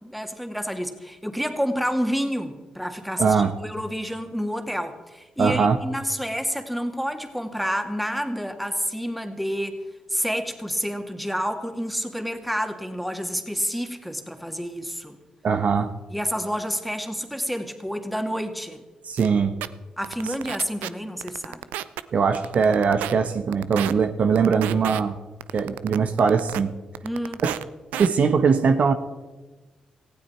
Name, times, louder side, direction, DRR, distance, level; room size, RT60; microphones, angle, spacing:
voice 1, 0.0-9.8 10.1-15.2 16.1-18.8 20.0-21.6 27.0-27.4, equal, ahead, 5 dB, 2.5 m, -29 dB
voice 2, 3.2-3.5 5.4-5.8 15.4-15.9 19.0-19.6 22.1-25.1 25.5-26.7 27.4-27.6 27.9-28.9, right 5 dB, 60° right, 8 dB, 1.1 m, -21 dB
sound 1, 19.2-19.3 19.6-19.7 20.0-20.9 21.2-22.0 22.3-23.1 23.5-23.9 24.4-25.0 25.4-26.6 26.9-27.6 27.9-28.1, right 14 dB, 80° right, 0.5 m, -31 dB
18.5 x 15.5 x 4.5 m, 1.2 s
hypercardioid pair, 40°, 3 cm